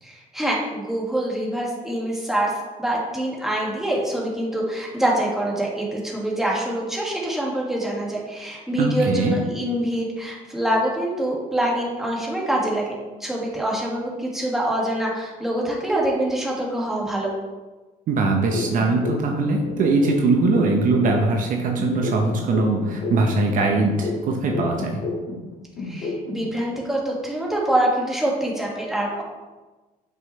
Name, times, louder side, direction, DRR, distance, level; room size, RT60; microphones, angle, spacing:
voice 1, 0.0-2.5 2.8-12.9 13.2-17.3 25.8-29.2, right 1 dB, ahead, -4 dB, 1.9 m, -25 dB
voice 2, 8.8-9.4 18.1-25.0, right 3 dB, 55° right, 2 dB, 0.9 m, -21 dB
sound 1, 18.5-21.5 21.8-25.5 25.8-26.5, left 3 dB, 50° left, 1.9 m, -30 dB
7.5 x 5.7 x 3.2 m, 1.2 s
cardioid pair, 105°, 16 cm